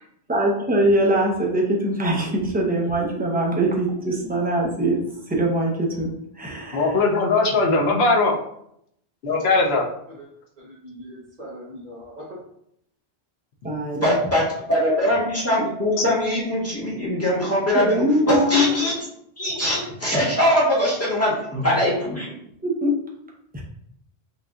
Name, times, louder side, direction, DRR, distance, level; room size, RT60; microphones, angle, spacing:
voice 1, 0.3-7.0 13.6-14.2 17.7-18.8 22.6-23.0 23.5-23.6, right 1 dB, 10° right, -2 dB, 0.7 m, -22 dB
voice 2, 6.7-8.4 9.2-9.8, left 3 dB, 70° left, 1 dB, 1.0 m, -19 dB
voice 3, 10.6-12.4, equal, 45° right, -8 dB, 1.0 m, -40 dB
voice 4, 14.0-18.9 19.4-22.3, equal, 15° left, -7 dB, 1.3 m, -22 dB
5.9 x 2.6 x 2.4 m, 0.73 s
omnidirectional pair, 1.1 m